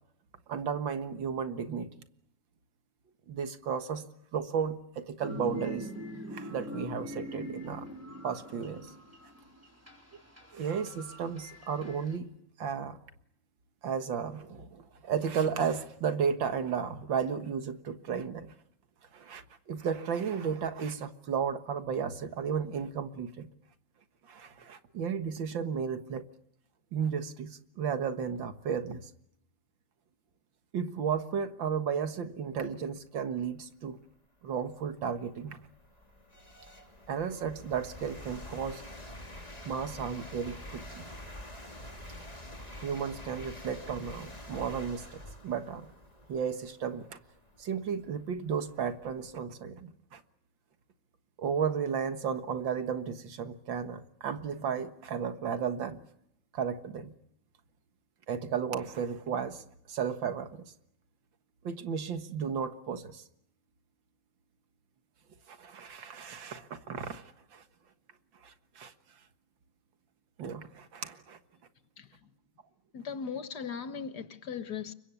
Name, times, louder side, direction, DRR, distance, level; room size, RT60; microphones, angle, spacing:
voice 1, 0.5-1.9 3.3-4.1 4.3-5.9 6.3-7.9 8.2-8.9 10.5-12.3 12.6-13.0 13.8-18.5 19.1-23.5 24.3-26.2 26.9-29.1 30.7-34.0 34.4-35.6 37.1-38.8 39.7-41.1 42.8-45.9 46.3-47.2 47.6-50.2 51.4-56.0 56.5-57.2 58.3-60.7 61.6-63.2 65.5-67.2 67.5-67.6 68.4-68.9 70.4-71.4, right 7 dB, 90° right, 2.3 m, -34 dB
sound 1, 5.2-12.2, left 1 dB, 5° right, 4.3 m, -43 dB
sound 2, 33.9-34.0 34.6-49.4, left 1 dB, 20° left, 2.9 m, -47 dB
voice 2, 72.0-72.3 72.9-74.9, left 6 dB, 60° left, 1.9 m, -38 dB
29.5 x 24.5 x 7.1 m
omnidirectional pair, 2.0 m